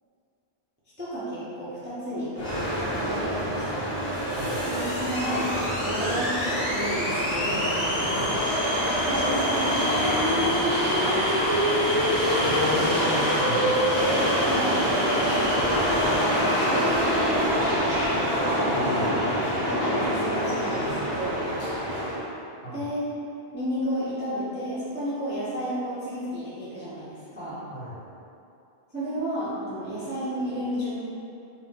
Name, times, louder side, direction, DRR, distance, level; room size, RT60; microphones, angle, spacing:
voice 1, 1.0-3.8 4.7-7.7 9.0-11.8 14.4-18.3 19.8-21.4 22.7-23.1 23.5-27.6 28.9-31.0, equal, 15° right, -11 dB, 0.4 m, -32 dB
sound 1, 2.4-22.2, equal, 90° left, 1.2 m, -25 dB
voice 2, 4.3-4.6 8.1-8.4 12.3-14.0 18.7-19.5 22.6-22.8 27.7-28.0, equal, 55° left, -10 dB, 1.1 m, -35 dB
2.6 x 2.1 x 3.3 m, 2.6 s
omnidirectional pair, 1.2 m